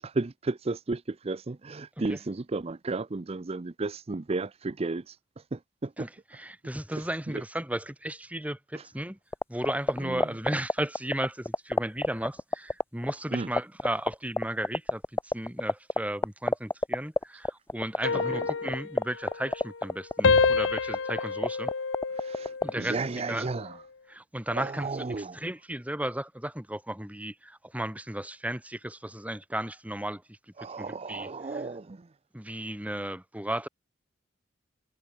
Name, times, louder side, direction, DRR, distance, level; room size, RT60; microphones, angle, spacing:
voice 1, 0.0-6.1 6.9-7.4 8.7-8.9 10.0-10.3 13.3-13.5 18.1-18.5 22.1-23.8 24.5-25.4 30.6-32.1, right 3 dB, 35° right, 0.5 m, -34 dB
voice 2, 6.0-9.2 9.5-21.7 22.6-23.0 23.3-23.5 24.1-31.6 32.3-33.7, right 1 dB, 10° right, 2.6 m, -35 dB
sound 1, 9.3-22.7, left 2 dB, 15° left, 0.7 m, -24 dB
sound 2, 18.0-19.9 20.2-22.8 23.3-23.6, left 4 dB, 80° left, 0.9 m, -28 dB
head